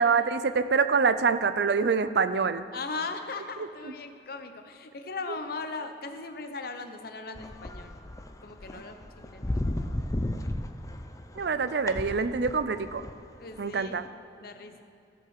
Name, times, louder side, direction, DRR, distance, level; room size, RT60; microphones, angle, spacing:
voice 1, 0.0-2.7 3.6-3.9 11.4-13.0 13.6-14.0, right 5 dB, 65° right, 12 dB, 0.5 m, -25 dB
voice 2, 2.7-7.9 8.4-9.5 13.4-14.0 14.4-14.8, left 3 dB, 55° left, 7 dB, 0.8 m, -38 dB
sound 1, 7.4-13.1 13.5-13.7 14.1-14.2, left 1 dB, 20° left, 0.5 m, -34 dB
15.5 x 5.6 x 6.5 m, 2.7 s
head